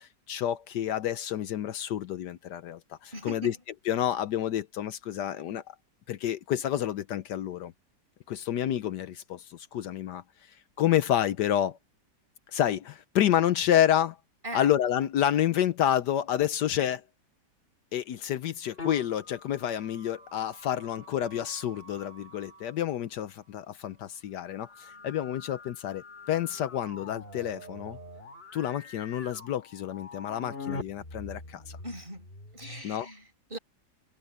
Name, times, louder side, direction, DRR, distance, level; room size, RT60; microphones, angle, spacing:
voice 1, 0.0-3.5 3.9-5.8 6.1-7.7 8.3-10.2 10.8-11.8 12.5-14.2 14.5-17.0 17.9-28.0 28.5-31.8 32.8-33.1, left 11 dB, 75° left, 1.3 m, -29 dB
voice 2, 3.1-3.5 14.4-14.7 31.8-32.3 32.5-33.6, equal, 30° right, 5.8 m, -40 dB
sound 1, 18.7-22.8 24.4-32.8, left 3 dB, 30° left, 4.0 m, -45 dB
omnidirectional pair, 1.9 m